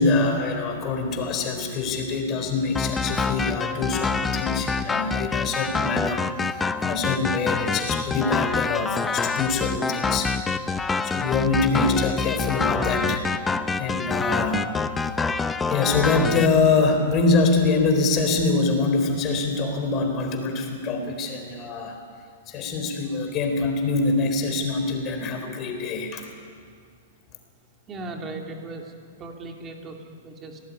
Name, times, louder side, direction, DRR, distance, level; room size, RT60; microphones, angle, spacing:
voice 1, 0.0-10.3 10.6-13.3 13.8-14.7 15.0-15.3 15.7-22.0 22.5-26.3, left 3 dB, 25° left, 4 dB, 4.0 m, -24 dB
sound 1, 2.8-16.5, left 4 dB, 10° left, 0.6 m, -26 dB
voice 2, 27.9-28.9 29.2-30.6, right 2 dB, 15° right, 2 dB, 2.8 m, -37 dB
27.0 x 19.5 x 9.9 m, 2.1 s
supercardioid pair, 165°, 0 cm